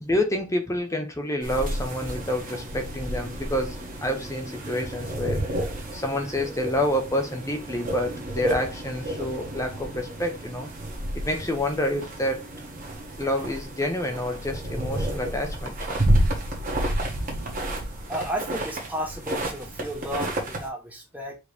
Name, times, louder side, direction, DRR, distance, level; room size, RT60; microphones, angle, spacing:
voice 1, 0.0-5.4 5.9-10.7 11.2-12.5 13.2-15.8, left 1 dB, 15° left, 0.7 m, -28 dB
sound 1, 1.4-20.7, right 1 dB, 35° right, 1.5 m, -31 dB
sound 2, 14.6-18.1, equal, 85° right, 1.2 m, -41 dB
voice 2, 18.1-21.4, equal, 5° right, 1.0 m, -33 dB
4.9 x 3.1 x 3.4 m
head